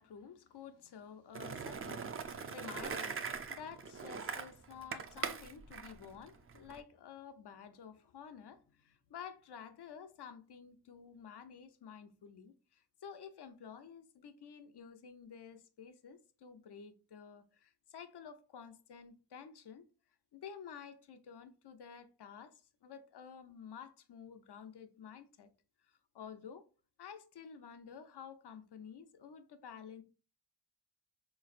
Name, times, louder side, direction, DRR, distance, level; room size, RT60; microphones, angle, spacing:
voice 1, 0.0-19.8 20.3-25.5 26.1-26.7 27.0-30.0, left 7 dB, 90° left, 0.6 m, -51 dB
Skateboard, 1.3-6.8, right 5 dB, 35° right, 0.4 m, -42 dB
3.8 x 3.1 x 2.4 m
wide cardioid pair, 70°, 39 cm